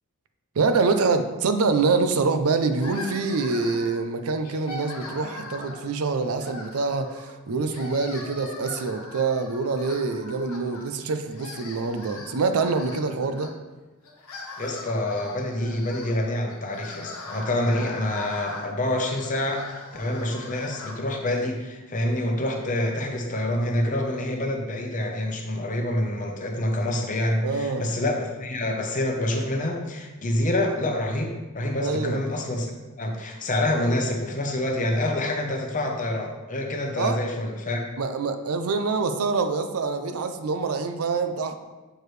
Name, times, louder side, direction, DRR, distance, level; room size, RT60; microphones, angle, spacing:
voice 1, 0.6-13.5 27.4-27.8 31.8-32.2 37.0-37.2 38.0-41.5, right 4 dB, 85° right, 8 dB, 0.5 m, -25 dB
sound 1, 2.8-4.0 4.4-5.9 6.4-7.3 7.6-10.9 11.2-13.5 14.0-21.0, left 2 dB, 80° left, 1.1 m, -40 dB
voice 2, 14.6-32.7 33.0-37.8, left 1 dB, 35° left, 1 dB, 0.8 m, -27 dB
6.6 x 4.6 x 3.2 m, 1.2 s
head